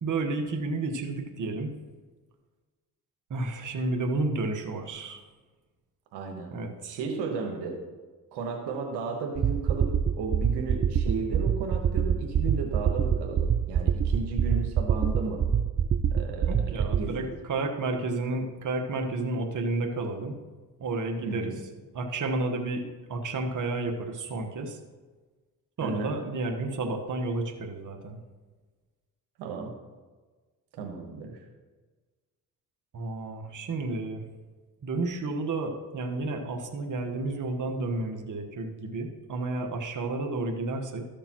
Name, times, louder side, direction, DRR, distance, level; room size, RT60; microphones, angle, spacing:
voice 1, 0.0-1.7 3.3-5.2 6.5-7.0 16.5-20.4 20.8-21.5 21.9-22.8 23.1-24.8 25.8-28.2 32.9-34.2 34.8-41.1, right 2 dB, 50° right, 4 dB, 1.3 m, -31 dB
voice 2, 6.1-6.5 6.8-7.8 8.3-15.4 16.1-17.3 21.2-21.6 25.8-26.1 29.4-29.7 30.7-31.4, right 4 dB, 90° right, 2 dB, 1.2 m, -34 dB
sound 1, 9.4-17.0, right 8 dB, 35° right, 0.4 m, -26 dB
13.0 x 6.7 x 3.0 m, 1.3 s
supercardioid pair, 65°, 39 cm